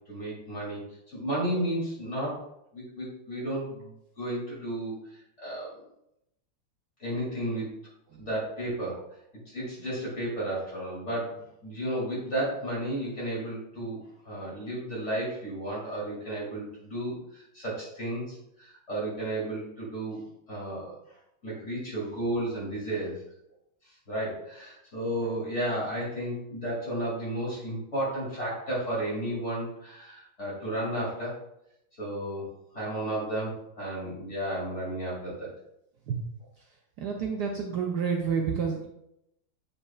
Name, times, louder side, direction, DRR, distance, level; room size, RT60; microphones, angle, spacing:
voice 1, 0.1-0.8 1.1-2.4 2.7-4.9 5.4-5.8 7.0-7.7 8.2-9.0 9.5-14.0 14.2-20.2 20.5-21.0 21.4-23.2 24.1-31.3 32.0-35.5, right 1 dB, 30° left, -6 dB, 2.9 m, -33 dB
voice 2, 37.0-38.9, right 6 dB, 70° right, 1 dB, 1.0 m, -29 dB
7.6 x 5.3 x 2.4 m, 0.80 s
omnidirectional pair, 2.4 m